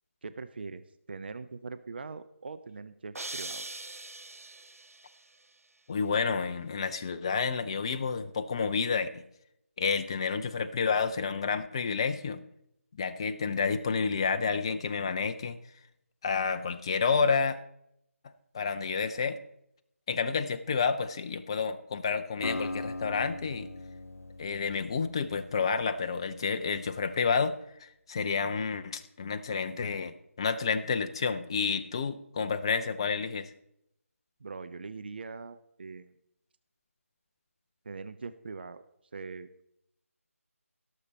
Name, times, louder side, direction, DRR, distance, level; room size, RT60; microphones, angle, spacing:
voice 1, 0.2-3.7 34.4-36.1 37.8-38.8 39.1-39.5, right 4 dB, 45° right, 11 dB, 0.6 m, -42 dB
sound 1, 3.1-5.2, right 2 dB, 75° right, 0.8 m, -41 dB
voice 2, 5.9-9.2 9.8-12.4 13.0-15.6 16.2-17.6 18.5-19.4 20.1-23.7 24.4-33.5, left 5 dB, 20° left, 9 dB, 0.5 m, -30 dB
Acoustic guitar, 22.4-26.5, left 2 dB, 80° left, 0.8 m, -40 dB
17.0 x 6.7 x 4.2 m, 0.77 s
figure-of-eight pair, 160°, 8 cm